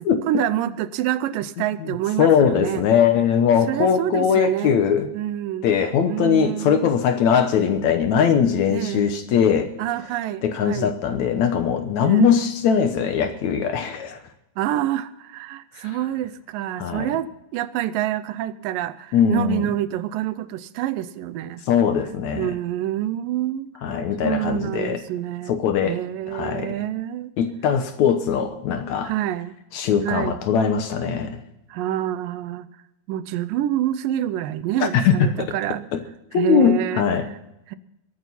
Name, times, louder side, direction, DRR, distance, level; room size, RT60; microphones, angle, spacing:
voice 1, 0.3-2.8 3.7-4.8 5.1-5.7 6.1-6.9 8.7-9.1 9.8-10.9 12.0-12.3 14.6-21.6 22.3-23.7 24.2-25.6 25.9-27.3 29.0-29.6 30.0-30.4 31.7-32.7 33.1-35.9 36.3-37.4 37.7-37.8, right 12 dB, 80° right, 2.3 m, -27 dB
voice 2, 2.2-5.1 5.6-9.7 10.4-14.2 16.8-17.1 19.1-19.6 21.7-22.5 23.8-25.0 25.5-26.0 26.3-26.8 27.4-29.1 29.7-31.4 34.8-35.5 35.9-36.0 36.3-37.3, left 7 dB, 70° left, 2.0 m, -20 dB
22.0 x 9.2 x 5.5 m
omnidirectional pair, 4.0 m